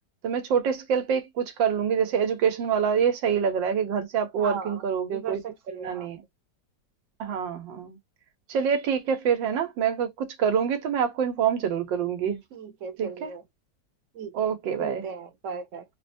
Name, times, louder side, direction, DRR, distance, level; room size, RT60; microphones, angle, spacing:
voice 1, 0.2-5.4 5.7-6.2 7.2-8.0 8.5-12.4 13.0-13.3 14.3-15.1, right 7 dB, 85° right, 1.7 m, -26 dB
voice 2, 4.4-4.8 5.1-6.1 12.5-13.4 14.1-14.5 14.8-15.8, right 6 dB, 55° right, 0.9 m, -37 dB
3.9 x 2.2 x 2.6 m
omnidirectional pair, 2.0 m